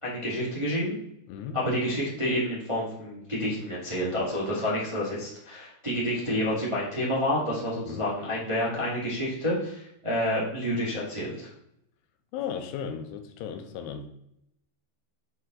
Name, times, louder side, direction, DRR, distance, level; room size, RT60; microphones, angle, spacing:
voice 1, 0.0-0.9 1.5-11.5, equal, 15° right, -7 dB, 1.2 m, -29 dB
voice 2, 1.3-1.6 7.8-8.1 12.3-14.1, left 7 dB, 85° left, 6 dB, 2.8 m, -36 dB
7.6 x 4.7 x 3.9 m, 0.77 s
omnidirectional pair, 4.8 m